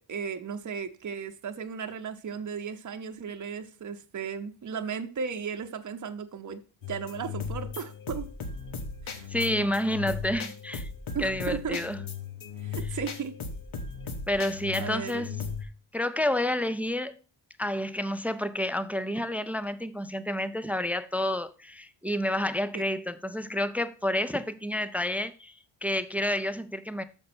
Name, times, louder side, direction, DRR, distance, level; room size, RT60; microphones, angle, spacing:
voice 1, 0.0-6.6 6.9-8.3 9.0-9.3 11.1-11.8 12.6-13.4 14.8-15.5 22.7-22.8, right 6 dB, 40° right, 0.8 m, -35 dB
sound 1, 6.8-15.6, left 5 dB, 70° left, 1.2 m, -37 dB
voice 2, 9.3-10.9 11.2-12.0 14.3-15.3 15.9-17.1 17.6-25.5 25.8-27.0, left 1 dB, 5° right, 0.3 m, -29 dB
6.6 x 5.3 x 5.9 m
wide cardioid pair, 130°, 49 cm